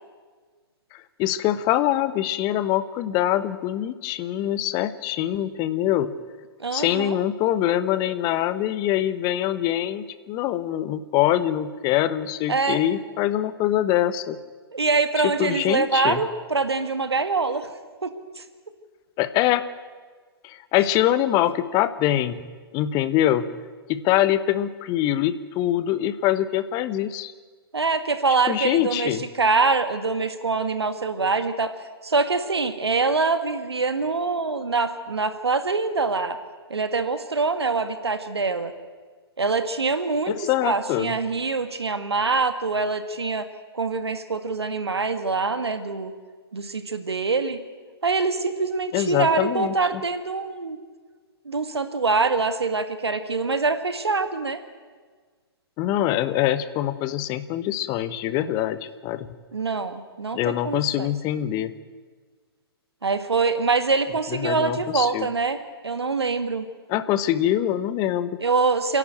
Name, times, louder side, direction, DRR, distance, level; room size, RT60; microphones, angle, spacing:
voice 1, 0.9-6.1 6.7-14.4 15.2-16.2 19.2-19.7 20.4-22.4 22.7-23.5 23.9-27.3 28.5-29.2 40.3-41.1 48.9-50.0 55.8-59.3 60.3-61.7 64.3-65.3 66.9-68.4, left 12 dB, 30° left, 14 dB, 1.1 m, -24 dB
voice 2, 6.6-7.2 12.5-12.8 14.7-17.7 18.0-18.4 27.7-31.7 32.0-36.4 36.7-38.7 39.4-40.3 40.6-43.5 43.7-46.1 46.5-47.6 48.0-50.8 51.5-54.6 59.5-61.1 63.0-65.6 65.8-66.7 68.4-69.0, right 4 dB, 80° right, 9 dB, 1.8 m, -24 dB
29.5 x 11.0 x 8.9 m, 1.5 s
figure-of-eight pair, 120°, 13 cm